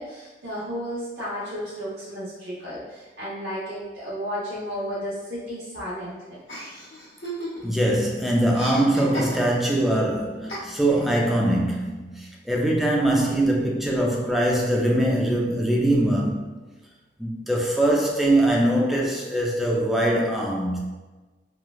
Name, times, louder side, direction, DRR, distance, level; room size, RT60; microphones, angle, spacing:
voice 1, 0.0-6.4, equal, 80° right, -9 dB, 0.8 m, -33 dB
Chuckle chortle, 6.5-7.9 8.1-9.8 10.5-11.1, equal, 75° left, 1.2 m, -35 dB
voice 2, 7.6-16.5 17.2-20.8, right 1 dB, ahead, -2 dB, 0.3 m, -22 dB
3.0 x 2.2 x 2.3 m, 1.2 s
head